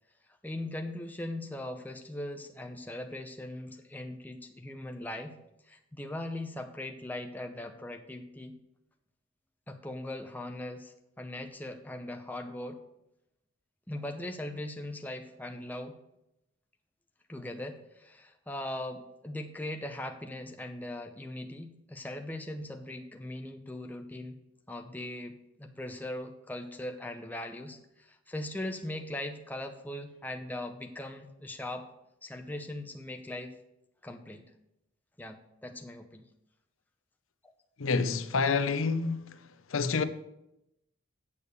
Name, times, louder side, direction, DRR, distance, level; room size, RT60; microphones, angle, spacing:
voice 1, 0.4-5.3 5.6-8.5 9.7-12.8 13.9-16.0 17.3-24.4 24.7-31.9 32.2-33.6 34.0-34.4 35.2-36.2, left 1 dB, 10° left, 0.7 m, -40 dB
voice 2, 37.8-39.4 39.7-40.0, left 4 dB, 75° left, 0.6 m, -28 dB
8.4 x 6.9 x 6.8 m
head